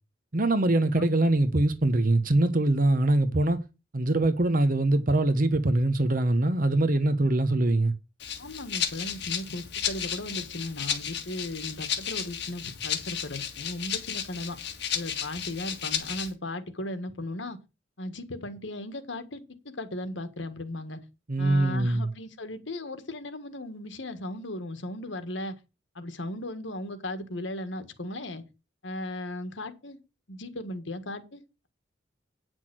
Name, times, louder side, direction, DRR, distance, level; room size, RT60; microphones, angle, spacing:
voice 1, 0.3-3.6 3.9-7.9 21.3-22.1, right 2 dB, 45° right, 0.9 m, -23 dB
Rattle (instrument), 8.2-16.3, left 9 dB, 60° left, 1.9 m, -33 dB
voice 2, 8.4-14.6 14.9-17.6 18.0-21.0 21.4-25.6 25.9-28.4 28.8-30.0 30.3-31.7, left 1 dB, 80° left, 1.6 m, -37 dB
9.5 x 6.2 x 6.0 m
head